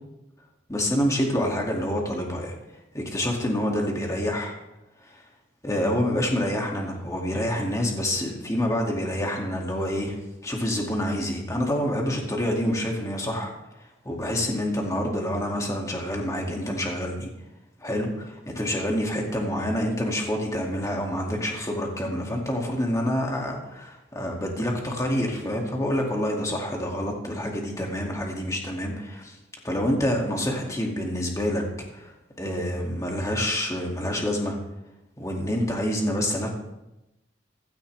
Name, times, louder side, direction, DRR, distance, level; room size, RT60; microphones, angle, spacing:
voice 1, 0.7-2.5 2.9-4.6 5.0-5.2 5.6-10.2 10.4-13.5 14.0-17.3 17.8-29.4 29.6-31.6 31.9-32.1 32.4-34.6 35.2-36.5, equal, 15° left, 0 dB, 2.3 m, -27 dB
16.0 x 13.0 x 3.4 m, 0.94 s
head